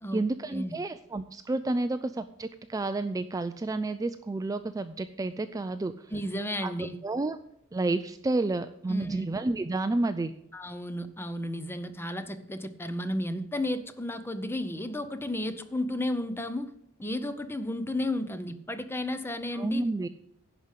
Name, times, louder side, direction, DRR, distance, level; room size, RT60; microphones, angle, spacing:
voice 1, 0.1-6.1 6.6-6.7 7.0-7.4 7.7-10.3 19.5-20.1, right 2 dB, 15° right, 10 dB, 0.3 m, -30 dB
voice 2, 6.1-7.0 8.9-9.3 10.5-16.7 17.0-19.8, left 1 dB, 10° left, 11 dB, 0.6 m, -33 dB
11.0 x 5.1 x 8.1 m, 0.76 s
head